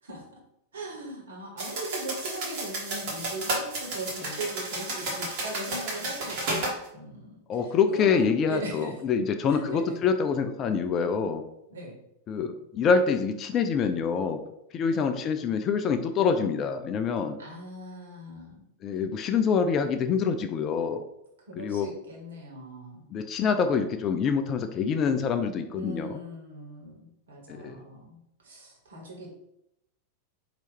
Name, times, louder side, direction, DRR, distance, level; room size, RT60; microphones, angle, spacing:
voice 1, 0.0-0.4 0.7-8.9 9.5-9.9 11.7-12.0 14.9-15.2 17.4-18.6 21.5-23.0 25.7-29.3, right 1 dB, 65° right, -2 dB, 1.4 m, -39 dB
sound 1, 1.6-6.8, right 2 dB, 45° right, 1.3 m, -32 dB
voice 2, 7.5-11.4 12.3-14.4 14.7-17.4 18.8-21.0 21.6-21.9 23.1-26.2 27.5-27.7, left 6 dB, 30° left, 8 dB, 0.4 m, -26 dB
4.5 x 2.8 x 3.3 m, 0.81 s
figure-of-eight pair, 90°, 0 cm